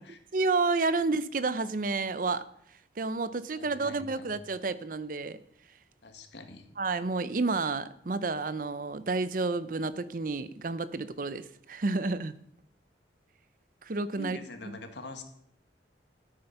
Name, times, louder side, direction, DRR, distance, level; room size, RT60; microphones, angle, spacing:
voice 1, 0.3-2.4 3.0-5.4 6.8-12.4 13.9-14.4, right 3 dB, 45° right, 0.6 m, -30 dB
voice 2, 3.5-4.3 6.0-6.7 14.2-15.2, left 2 dB, 75° left, 1.8 m, -44 dB
13.5 x 8.7 x 5.8 m
head